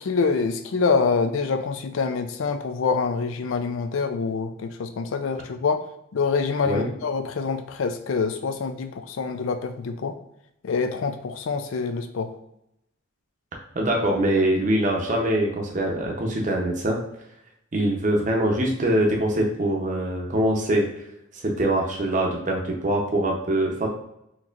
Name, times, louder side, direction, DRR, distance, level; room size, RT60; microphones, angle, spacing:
voice 1, 0.0-5.8 6.1-10.1 10.6-12.3, left 4 dB, 70° left, 7 dB, 0.4 m, -26 dB
voice 2, 13.7-17.0 17.7-20.9 21.3-23.9, right 1 dB, 35° right, 0 dB, 0.7 m, -23 dB
4.3 x 2.9 x 2.4 m, 0.80 s
head